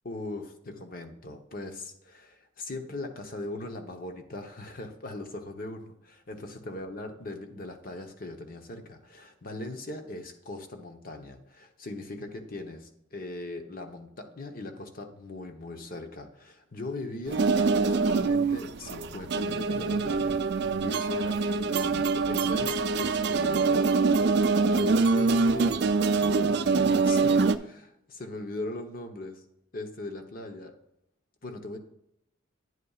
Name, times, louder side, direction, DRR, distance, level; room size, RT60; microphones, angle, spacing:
voice 1, 0.0-23.8 24.5-29.4 29.7-30.7 31.4-31.8, left 2 dB, 45° left, 5 dB, 1.0 m, -39 dB
sound 1, 17.3-27.6, right 4 dB, 55° right, 0.4 m, -24 dB
9.4 x 8.3 x 2.4 m, 0.79 s
head